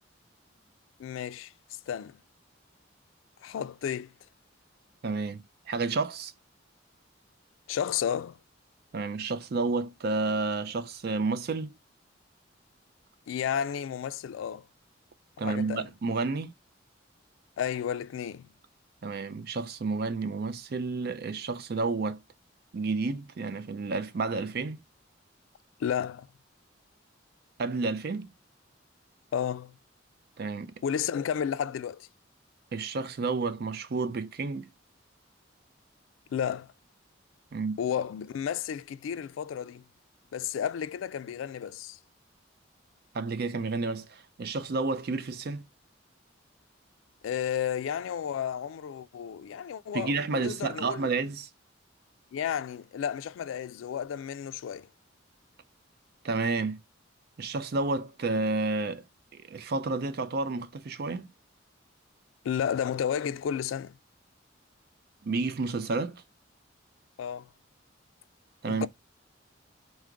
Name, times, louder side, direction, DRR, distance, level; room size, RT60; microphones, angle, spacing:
voice 1, 1.0-1.5 1.9-2.2 3.4-4.1 7.7-8.4 13.3-14.7 15.4-15.9 17.6-18.5 25.8-26.3 29.3-29.8 30.8-32.1 36.3-36.7 37.8-39.8 40.3-42.0 47.2-51.1 52.3-54.9 62.4-64.0 67.2-67.5 68.7-68.9, left 8 dB, 85° left, 0.3 m, -32 dB
voice 2, 5.0-6.3 8.9-11.7 15.4-16.5 19.0-22.2 22.7-24.8 27.6-28.3 30.4-30.7 32.7-34.7 37.5-37.8 43.1-45.7 49.9-51.5 56.2-56.8 57.4-59.0 59.3-61.3 65.2-66.2 68.6-68.9, right 3 dB, 55° right, 0.4 m, -30 dB
4.6 x 2.1 x 3.6 m
head